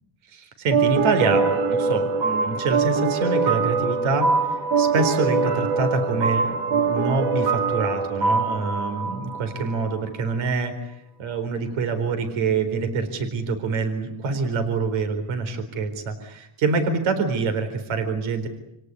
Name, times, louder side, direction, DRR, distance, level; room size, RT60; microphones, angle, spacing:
voice 1, 0.3-4.3 4.8-18.5, right 4 dB, 75° right, 8 dB, 4.3 m, -26 dB
sound 1, 0.7-10.0, right 4 dB, 60° right, 2.8 m, -23 dB
28.0 x 18.5 x 9.7 m, 0.80 s
cardioid pair, 105°, 48 cm